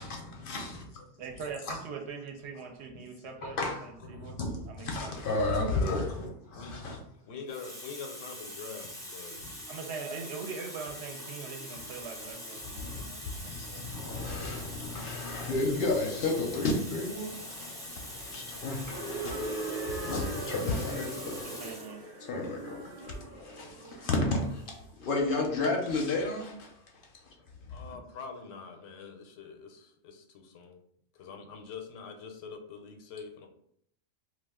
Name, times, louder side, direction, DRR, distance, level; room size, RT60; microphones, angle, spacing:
voice 1, 0.0-1.0 1.7-1.8 3.4-7.0 9.4-9.5 12.8-13.1 13.4-21.5 22.2-26.7 27.2-27.3 27.6-27.8, left 2 dB, 60° left, 0.6 m, -33 dB
voice 2, 1.2-4.4 4.7-5.1 9.7-13.8 14.7-14.8 21.4-22.0, right 5 dB, 70° right, 0.8 m, -42 dB
Water tap faucet, 6.7-6.9 7.5-22.0 22.9-23.1, left 1 dB, 5° left, 0.4 m, -43 dB
voice 3, 7.2-9.4 27.7-30.8 31.1-33.5, left 5 dB, 90° left, 0.9 m, -44 dB
sound 1, 18.9-24.8, right 2 dB, 35° right, 0.9 m, -39 dB
2.4 x 2.3 x 3.5 m
omnidirectional pair, 1.2 m